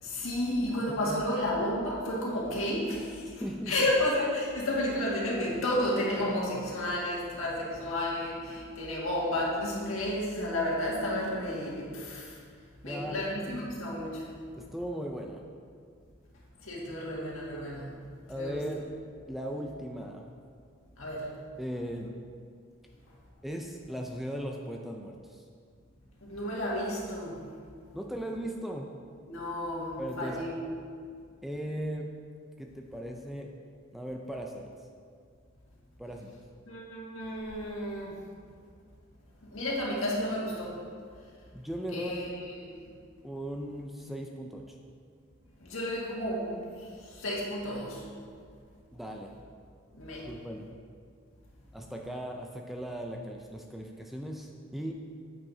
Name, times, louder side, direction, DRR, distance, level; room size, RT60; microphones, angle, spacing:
voice 1, 0.0-3.2 3.7-12.3 12.8-14.2 16.6-17.9 18.4-18.6 21.0-21.3 26.2-27.4 29.2-30.5 36.7-38.1 39.5-40.7 41.9-42.3 42.6-42.8 45.6-46.6 47.1-48.0 49.9-50.3, left 1 dB, 85° left, -4 dB, 1.9 m, -31 dB
voice 2, 0.9-1.2 3.4-3.7 12.8-13.3 14.6-15.4 18.3-18.8 19.3-20.3 21.6-22.2 23.4-25.4 27.9-28.9 30.0-30.4 31.4-32.1 32.6-33.5 33.9-34.7 36.0-36.3 41.5-42.3 43.2-44.8 48.9-49.4 50.3-50.7 51.7-54.9, equal, ahead, 1 dB, 0.4 m, -38 dB
8.7 x 8.3 x 2.7 m, 2.2 s
head